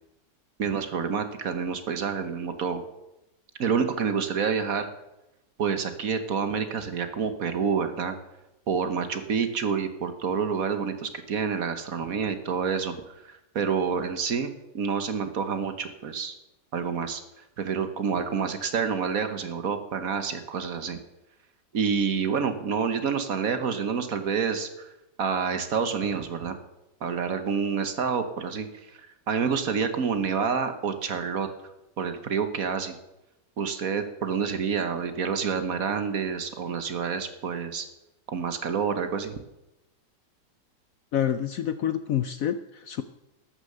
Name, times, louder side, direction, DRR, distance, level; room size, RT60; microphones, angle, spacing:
voice 1, 0.6-2.8 3.6-4.9 5.6-8.1 8.7-16.3 16.7-21.0 21.7-24.9 25.2-26.6 27.0-31.5 32.0-32.9 33.6-37.9 38.3-39.4, right 6 dB, 55° right, 9 dB, 1.5 m, -28 dB
voice 2, 41.1-43.0, left 10 dB, 65° left, 11 dB, 0.9 m, -27 dB
13.0 x 9.8 x 6.7 m, 0.93 s
omnidirectional pair, 1.9 m